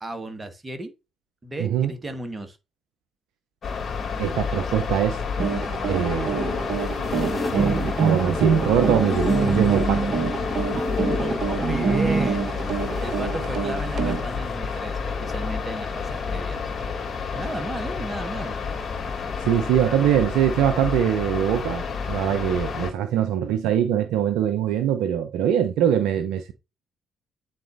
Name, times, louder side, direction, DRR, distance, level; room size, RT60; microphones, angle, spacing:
voice 1, 0.0-0.9 1.4-2.6 11.2-16.6 17.4-18.6, right 2 dB, 25° right, 1.4 m, -34 dB
voice 2, 1.6-1.9 4.2-5.2 5.9-6.4 7.5-10.1 19.4-26.5, right 9 dB, 70° right, 0.5 m, -23 dB
sound 1, 3.6-22.9, left 5 dB, 45° left, 2.3 m, -30 dB
sound 2, 5.4-14.2, right 5 dB, 55° right, 0.9 m, -26 dB
sound 3, 5.9-13.2 14.2-15.7 16.0-16.7 19.2-20.0, left 2 dB, 25° left, 1.6 m, -33 dB
8.9 x 4.0 x 2.6 m
hypercardioid pair, 45°, 0 cm